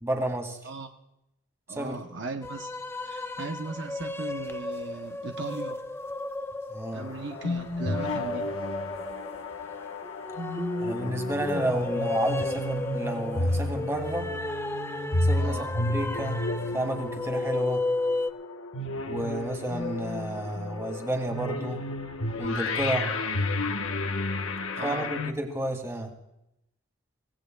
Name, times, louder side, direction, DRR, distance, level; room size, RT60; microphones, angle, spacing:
voice 1, 0.0-0.6 1.7-2.0 6.7-7.1 10.8-14.3 15.2-16.4 16.7-17.9 19.1-21.8 22.4-23.1 24.8-26.1, right 1 dB, 15° right, 3 dB, 2.2 m, -31 dB
voice 2, 1.7-5.8 6.9-8.5 15.4-15.7 23.0-23.3 24.7-25.1, right 3 dB, 55° right, 4 dB, 0.8 m, -38 dB
sound 1, 2.4-18.3, left 2 dB, 10° left, 0.5 m, -33 dB
sound 2, 6.9-25.3, left 2 dB, 75° left, 1.1 m, -32 dB
sound 3, 8.6-8.8 10.4-15.5, left 1 dB, 80° right, 3.1 m, -39 dB
25.0 x 18.0 x 2.3 m, 0.83 s
head